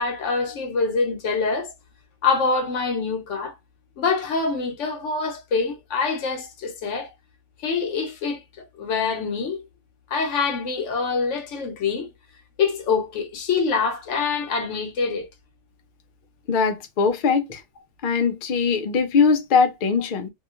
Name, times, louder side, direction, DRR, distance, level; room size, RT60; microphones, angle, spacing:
voice 1, 0.0-1.7 2.2-3.5 4.0-7.1 7.6-8.4 8.8-9.6 10.1-12.1 12.6-15.3, left 4 dB, 75° left, 1.0 m, -25 dB
voice 2, 16.5-17.6 18.0-20.3, left 5 dB, 55° left, 0.6 m, -21 dB
2.7 x 2.3 x 2.4 m
omnidirectional pair, 1.3 m